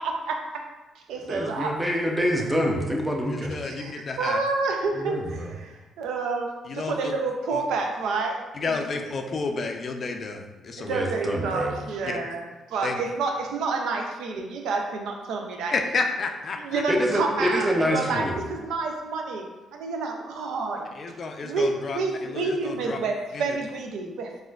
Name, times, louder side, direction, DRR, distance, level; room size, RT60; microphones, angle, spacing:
voice 1, 0.0-0.4 1.1-1.7 3.6-9.1 10.8-15.7 16.6-20.9 21.4-24.3, right 3 dB, 85° right, 3 dB, 0.4 m, -29 dB
voice 2, 1.3-3.6 4.9-5.5 10.9-11.7 16.9-18.4, equal, 10° right, 0 dB, 0.6 m, -26 dB
voice 3, 3.3-4.4 6.6-7.1 7.5-7.6 8.5-11.0 12.0-12.1 12.8-13.0 15.7-16.8 21.0-23.0 23.3-23.5, left 4 dB, 45° left, 4 dB, 0.4 m, -31 dB
4.2 x 2.5 x 2.3 m, 1.1 s
cardioid pair, 90°, 0 cm